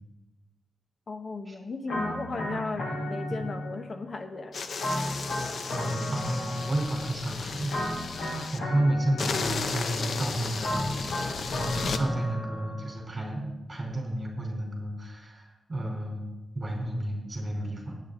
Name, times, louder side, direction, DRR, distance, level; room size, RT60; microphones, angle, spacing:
voice 1, 1.1-4.8, left 3 dB, 50° left, 8 dB, 1.1 m, -36 dB
sound 1, 1.9-4.0 4.8-7.2 7.7-9.8 10.6-13.0, left 1 dB, 90° left, 3.8 m, -33 dB
sound 2, 4.5-8.6 9.2-12.0, left 4 dB, 70° left, 0.8 m, -34 dB
voice 2, 6.1-8.2 8.5-11.4 11.7-16.3 16.5-18.0, right 1 dB, 30° right, 0 dB, 3.8 m, -32 dB
18.5 x 8.9 x 3.9 m, 1.0 s
wide cardioid pair, 120°, 0 cm